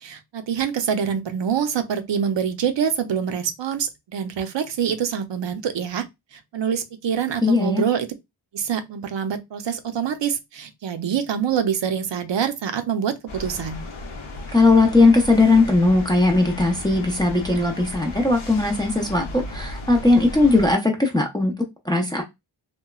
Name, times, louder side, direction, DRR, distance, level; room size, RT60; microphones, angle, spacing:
voice 1, 0.0-6.0 6.3-8.1 8.5-13.8, right 7 dB, 65° right, 0.6 m, -25 dB
voice 2, 7.4-7.8 14.5-22.2, left 3 dB, 10° left, 0.5 m, -18 dB
sound 1, 13.3-20.7, left 2 dB, 85° left, 0.7 m, -35 dB
2.9 x 2.1 x 2.2 m
wide cardioid pair, 80°, 47 cm